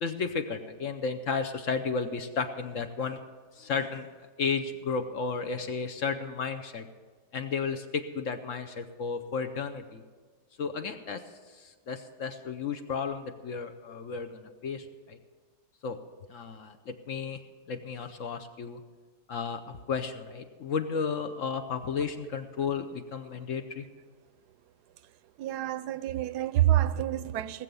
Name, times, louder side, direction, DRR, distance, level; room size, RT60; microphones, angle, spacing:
voice 1, 0.0-3.2 3.6-4.1 4.4-6.8 7.3-10.0 10.6-11.2 11.5-15.2 15.8-16.0 16.3-17.4 17.7-18.8 19.3-23.9, left 5 dB, 60° left, 1.0 m, -33 dB
voice 2, 25.4-27.6, right 13 dB, 75° right, 1.1 m, -27 dB
18.5 x 7.6 x 6.9 m
omnidirectional pair, 1.8 m